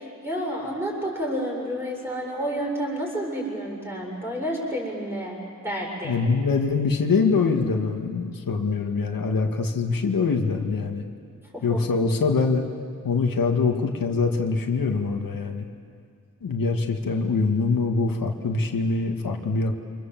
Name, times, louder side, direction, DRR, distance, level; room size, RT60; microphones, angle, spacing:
voice 1, 0.2-5.4 5.6-6.1 11.5-11.8, equal, 5° right, -2 dB, 6.6 m, -30 dB
voice 2, 6.0-11.0 11.6-12.7 13.0-15.7 16.4-19.7, left 4 dB, 85° left, 2 dB, 2.1 m, -24 dB
28.5 x 26.5 x 7.7 m, 2.2 s
wide cardioid pair, 160°, 33 cm